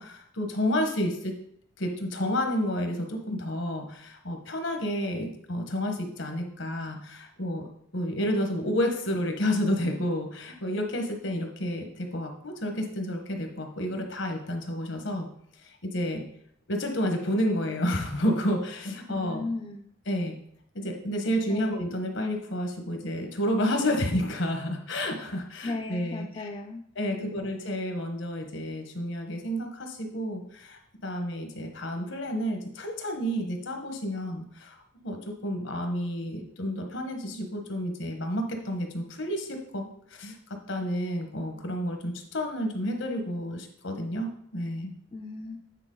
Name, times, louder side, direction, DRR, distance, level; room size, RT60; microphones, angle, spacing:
voice 1, 0.0-1.3 1.8-7.6 7.9-15.3 15.8-16.2 16.7-19.4 20.1-20.3 20.7-26.5 27.0-34.8 35.0-40.3 40.7-44.9, equal, 75° left, 4 dB, 1.3 m, -30 dB
voice 2, 19.1-19.9 21.5-21.8 25.6-26.8 27.1-27.5 45.1-45.6, left 2 dB, 25° left, 3 dB, 0.4 m, -36 dB
9.0 x 4.4 x 3.8 m, 0.69 s
head